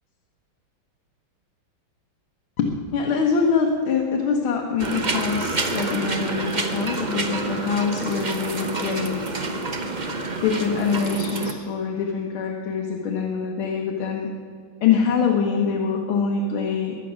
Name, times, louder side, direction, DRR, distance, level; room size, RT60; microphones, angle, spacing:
voice 1, 2.6-9.7 10.4-14.3 14.8-17.0, left 5 dB, 90° left, 0 dB, 2.0 m, -24 dB
sound 1, 4.8-11.5, right 2 dB, 30° right, 0.9 m, -28 dB
23.0 x 8.4 x 6.3 m, 2.2 s
omnidirectional pair, 2.2 m